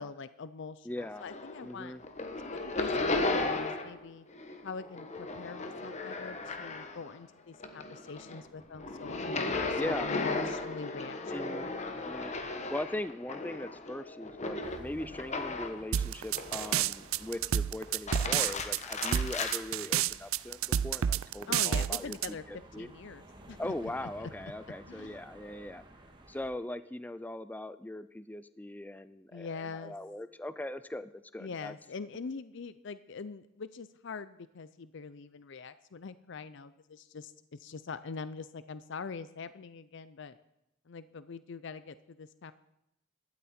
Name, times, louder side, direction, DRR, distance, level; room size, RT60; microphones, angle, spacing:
voice 1, 0.0-2.0 2.4-4.3 4.6-11.8 21.5-24.1 24.9-25.2 29.3-29.9 31.4-40.4 40.9-42.5, left 5 dB, 60° left, 14 dB, 0.5 m, -43 dB
voice 2, 0.9-1.3 1.6-2.0 9.8-10.6 11.3-11.7 12.0-12.3 12.7-22.9 23.6-25.8 26.3-31.7, left 1 dB, 10° left, 14 dB, 0.4 m, -40 dB
sound 1, 1.0-1.7 2.0-4.0 4.3-7.2 7.5-15.9 16.4-17.0 17.9-19.6, left 3 dB, 35° left, 1.2 m, -36 dB
sound 2, 14.6-26.5, right 1 dB, 25° right, 1.7 m, -54 dB
sound 3, 15.9-22.3, right 9 dB, 75° right, 0.4 m, -29 dB
16.5 x 12.5 x 4.3 m, 0.86 s
head